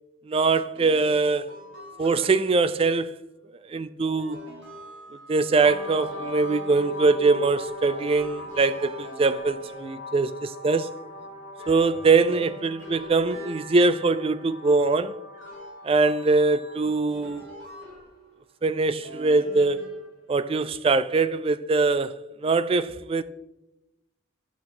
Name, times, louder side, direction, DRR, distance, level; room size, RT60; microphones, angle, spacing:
voice 1, 0.3-1.5 2.0-3.2 3.7-4.4 5.3-10.9 11.7-15.2 15.8-17.5 18.6-19.8 20.3-22.1 22.4-23.2, right 3 dB, 30° right, 0.3 m, -22 dB
sound 1, 0.7-2.7 4.0-7.2 7.6-10.7 11.1-14.6 15.3-18.5 19.0-20.5, right 1 dB, 80° right, 2.7 m, -45 dB
sound 2, 5.6-17.2, left 2 dB, 50° left, 1.9 m, -40 dB
10.5 x 6.1 x 4.2 m
head